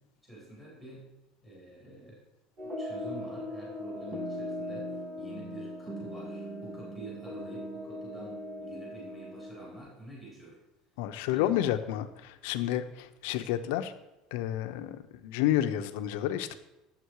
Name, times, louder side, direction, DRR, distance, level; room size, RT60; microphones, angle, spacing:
voice 1, 0.2-1.1 1.4-2.2 2.8-4.9 5.2-10.6 11.3-11.5, right 1 dB, 15° right, -6 dB, 4.1 m, -47 dB
sound 1, 2.6-9.8, left 1 dB, 30° right, 2.0 m, -39 dB
voice 2, 11.0-13.9 14.3-16.6, left 12 dB, 80° left, 9 dB, 0.8 m, -30 dB
11.5 x 7.6 x 4.8 m, 0.97 s
cardioid pair, 155°, 0 cm